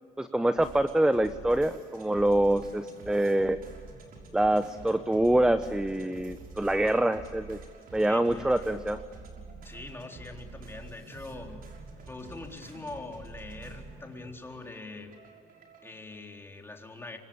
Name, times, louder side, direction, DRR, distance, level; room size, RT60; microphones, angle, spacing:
voice 1, 0.2-3.6 4.3-7.6 7.9-9.0, right 1 dB, 5° right, 11 dB, 0.9 m, -25 dB
sound 1, 0.6-16.0, right 3 dB, 60° right, 6.2 m, -47 dB
voice 2, 6.6-7.1 8.0-8.8 9.6-11.6 12.1-15.1 15.8-17.2, left 2 dB, 15° left, 2 dB, 3.9 m, -43 dB
26.5 x 24.5 x 8.8 m, 2.1 s
cardioid pair, 110°, 17 cm